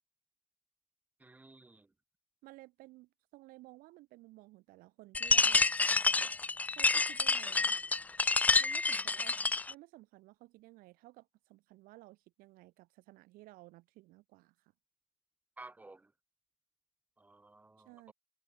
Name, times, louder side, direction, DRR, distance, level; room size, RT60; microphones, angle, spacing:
voice 1, 1.2-1.9 15.6-16.1 17.2-18.1, right 2 dB, 10° right, 1.6 m, -54 dB
voice 2, 2.4-5.6 6.7-7.7 8.6-14.7 17.8-18.1, right 20 dB, 55° right, 2.4 m, -56 dB
sound 1, 5.1-9.7, left 3 dB, 10° left, 0.4 m, -28 dB
cardioid pair, 150°, 18 cm